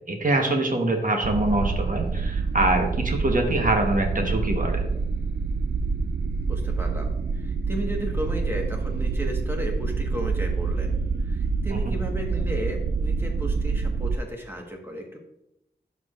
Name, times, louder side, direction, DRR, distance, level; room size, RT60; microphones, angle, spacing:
voice 1, 0.1-4.8 11.7-11.9, right 1 dB, 50° right, 3 dB, 1.2 m, -24 dB
sound 1, 1.2-14.2, right 4 dB, 70° right, 0.4 m, -27 dB
voice 2, 6.4-10.9 11.2-15.2, equal, 15° right, 1 dB, 1.4 m, -34 dB
11.5 x 4.7 x 2.5 m, 0.85 s
wide cardioid pair, 70°, 18 cm